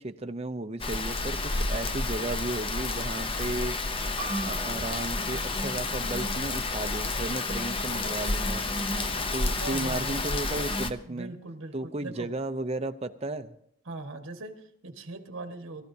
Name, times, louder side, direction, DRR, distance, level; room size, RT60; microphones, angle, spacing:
voice 1, 0.0-4.0 4.4-8.8 9.3-11.3 11.7-13.6, right 2 dB, 30° right, 8 dB, 0.6 m, -34 dB
Rain, 0.8-10.9, left 2 dB, 25° left, 0.6 m, -30 dB
sound 1, 4.2-9.3, right 3 dB, 45° right, 2.9 m, -46 dB
voice 2, 9.6-10.3 11.0-12.3 13.8-15.9, right 2 dB, 60° right, 4 dB, 1.6 m, -40 dB
22.5 x 13.5 x 2.8 m, 0.72 s
head